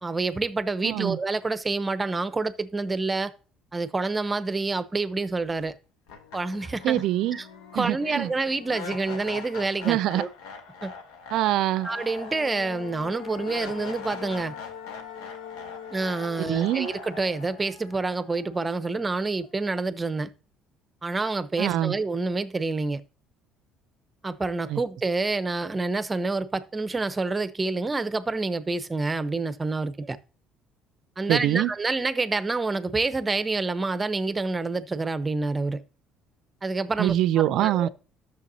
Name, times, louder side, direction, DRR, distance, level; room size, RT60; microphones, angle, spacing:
voice 1, 0.0-3.3 3.7-5.8 6.3-7.0 7.3-7.5 7.7-10.3 10.8-10.9 11.8-14.5 15.9-20.3 21.0-23.0 24.2-30.2 31.2-35.8 36.6-37.2 37.6-37.9, right 3 dB, 20° right, 0.8 m, -28 dB
voice 2, 0.8-1.2 6.8-7.4 7.7-8.3 9.8-10.2 11.3-11.9 16.4-16.9 21.6-22.0 24.7-24.8 31.3-31.7 37.0-37.9, right 13 dB, 70° right, 0.5 m, -24 dB
sound 1, 5.6-5.7 6.1-19.1, left 6 dB, 85° left, 1.4 m, -41 dB
11.0 x 6.8 x 2.8 m
supercardioid pair, 80°, 0 cm